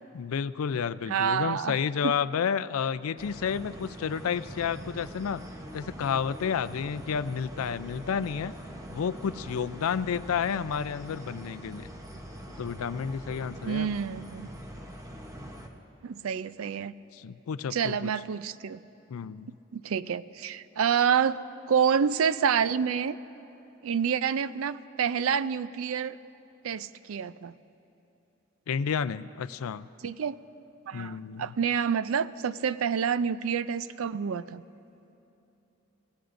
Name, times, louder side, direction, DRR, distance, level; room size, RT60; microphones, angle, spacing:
voice 1, 0.1-5.4 5.7-8.5 8.9-11.9 12.6-13.9 17.1-18.1 19.1-19.5 28.7-29.9 30.9-31.5, left 7 dB, 85° left, 16 dB, 0.4 m, -31 dB
voice 2, 1.1-1.8 2.0-2.1 13.6-14.5 16.0-16.9 17.7-18.8 19.7-21.4 21.7-23.2 23.8-26.2 26.6-27.5 30.0-30.4 30.9-34.6, right 7 dB, 80° right, 15 dB, 0.4 m, -28 dB
sound 1, 3.2-15.7, equal, 15° right, 0.9 m, -43 dB
28.5 x 16.5 x 2.6 m, 2.9 s
head